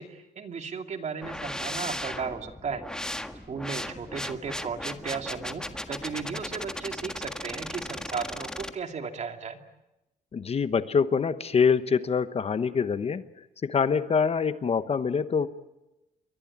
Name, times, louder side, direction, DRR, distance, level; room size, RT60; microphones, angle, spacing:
voice 1, 0.0-2.8 3.5-9.6, right 5 dB, 45° right, 6 dB, 2.7 m, -35 dB
sound 1, 1.2-8.7, left 1 dB, 5° left, 1.6 m, -36 dB
voice 2, 10.3-13.2 13.6-15.5, left 6 dB, 35° left, 12 dB, 1.1 m, -25 dB
28.5 x 23.5 x 8.7 m, 0.95 s
cardioid pair, 145°, 17 cm